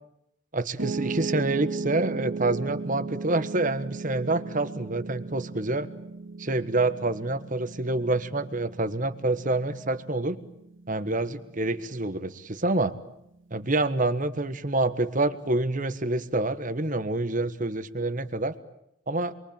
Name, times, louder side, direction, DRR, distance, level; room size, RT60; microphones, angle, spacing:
voice 1, 0.5-5.9 6.4-10.4 10.9-12.9 13.5-18.5 19.1-19.3, right 2 dB, 40° right, 12 dB, 1.5 m, -27 dB
Piano, 0.8-13.0, right 3 dB, 65° right, 2.3 m, -36 dB
28.0 x 22.5 x 8.9 m, 0.77 s
head